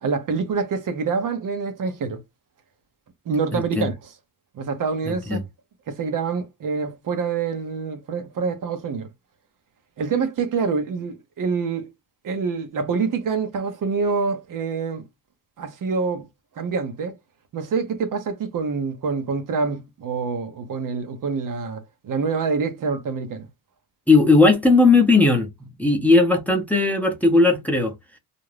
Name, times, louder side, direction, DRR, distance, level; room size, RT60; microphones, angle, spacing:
voice 1, 0.0-2.2 3.3-4.1 4.5-5.4 5.9-9.1 10.0-11.9 12.2-15.0 15.6-16.3 16.6-17.1 17.5-23.5, right 5 dB, 55° right, 0.7 m, -26 dB
voice 2, 3.5-3.9 5.1-5.4 24.1-25.5 25.8-27.9, left 3 dB, 5° left, 0.6 m, -17 dB
2.5 x 2.1 x 3.2 m
cardioid pair, 105°, 39 cm